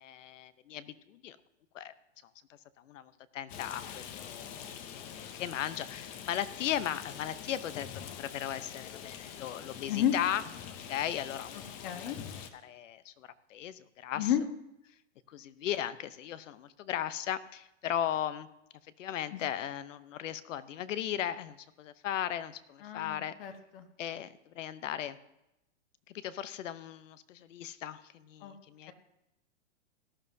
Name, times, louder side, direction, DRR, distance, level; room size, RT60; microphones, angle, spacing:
voice 1, 0.0-1.4 1.7-1.9 2.8-10.4 10.8-12.2 12.6-14.3 15.3-18.5 19.0-23.3 24.0-25.2 26.1-28.9, left 10 dB, 75° left, 14 dB, 0.9 m, -37 dB
Rain, 3.5-12.5, left 8 dB, 20° left, 0.5 m, -45 dB
voice 2, 11.8-12.2 14.1-14.4 19.3-19.4 22.8-23.9 28.4-28.5, left 11 dB, 45° left, 7 dB, 1.4 m, -31 dB
17.5 x 11.5 x 2.7 m, 0.87 s
supercardioid pair, 155°, 38 cm